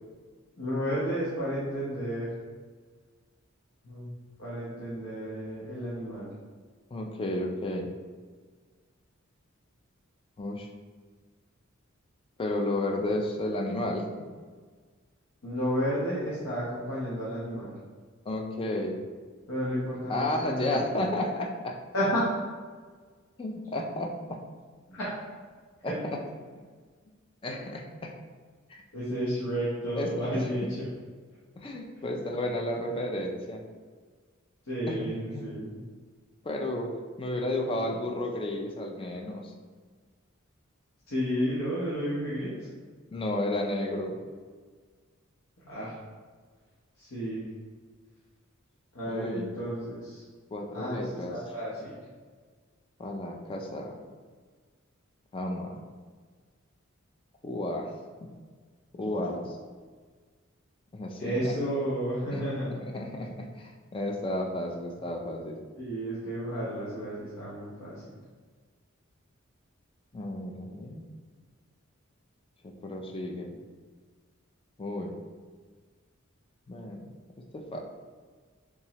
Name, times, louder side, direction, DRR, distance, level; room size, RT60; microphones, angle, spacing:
voice 1, 0.6-2.3 3.8-4.1 4.4-6.3 15.4-17.8 19.5-20.9 21.9-22.2 24.9-25.1 25.8-26.0 28.9-30.6 31.9-32.1 34.6-35.8 41.1-42.7 45.6-46.0 47.0-47.5 48.9-50.2 50.7-52.0 61.2-62.8 65.8-68.2, equal, 85° left, -8 dB, 0.9 m, -32 dB
voice 2, 6.9-7.9 10.4-10.7 12.4-14.2 18.3-19.0 20.1-21.8 23.4-24.4 25.8-25.9 27.4-28.1 28.7-28.8 29.9-30.4 31.6-33.6 34.9-35.0 35.3-35.5 36.4-39.5 43.1-44.2 49.1-49.5 50.5-51.3 53.0-54.0 55.3-55.8 57.4-57.9 58.2-58.3 58.9-59.6 60.9-61.5 62.3-62.4 62.8-65.6 70.1-71.0 72.8-73.6 74.8-75.1 76.7-77.0 77.5-77.8, left 1 dB, 25° left, 1 dB, 0.4 m, -32 dB
3.5 x 3.0 x 2.8 m, 1.5 s
head